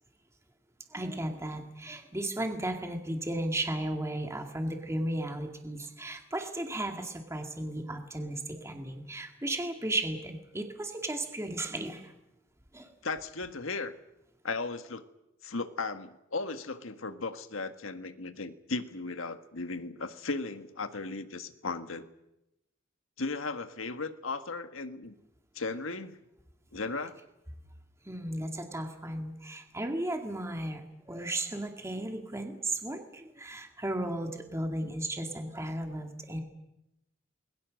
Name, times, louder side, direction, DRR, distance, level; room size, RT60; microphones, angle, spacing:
voice 1, 0.9-12.1 12.7-12.9 28.1-30.8 31.1-36.4, right 1 dB, 15° right, 3 dB, 2.3 m, -35 dB
voice 2, 13.0-13.9 14.4-15.1 15.4-22.1 23.2-25.1 25.5-26.2 26.7-27.2 34.8-34.9, left 3 dB, 90° left, 9 dB, 1.6 m, -36 dB
29.0 x 21.5 x 6.4 m, 0.90 s
head